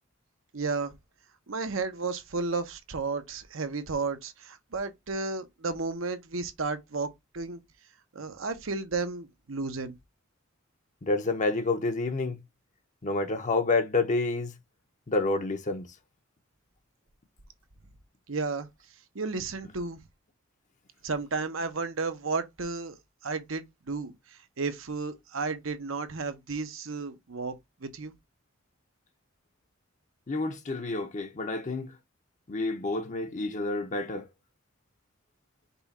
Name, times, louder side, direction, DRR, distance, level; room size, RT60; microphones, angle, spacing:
voice 1, 0.5-0.9 1.5-7.6 8.1-9.9 18.3-18.7 19.1-20.0 21.0-23.0 23.2-27.6 27.8-28.1, right 4 dB, 70° right, 0.9 m, -33 dB
voice 2, 11.0-12.4 13.0-14.5 15.1-15.9 30.3-31.9 32.5-34.3, left 3 dB, 40° left, 0.7 m, -28 dB
5.4 x 2.4 x 4.1 m
head